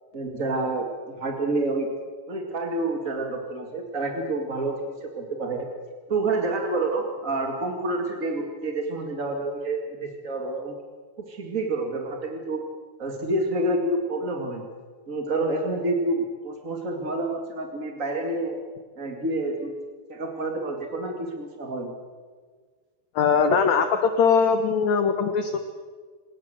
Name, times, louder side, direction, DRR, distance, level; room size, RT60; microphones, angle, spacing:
voice 1, 0.1-1.9 2.3-5.7 6.1-10.7 11.3-12.6 13.0-14.7 15.1-18.6 19.0-19.8 20.1-22.0, right 2 dB, 35° right, 3 dB, 1.3 m, -28 dB
voice 2, 23.1-25.6, left 5 dB, 75° left, 8 dB, 1.6 m, -21 dB
28.0 x 18.5 x 7.8 m, 1.5 s
omnidirectional pair, 4.9 m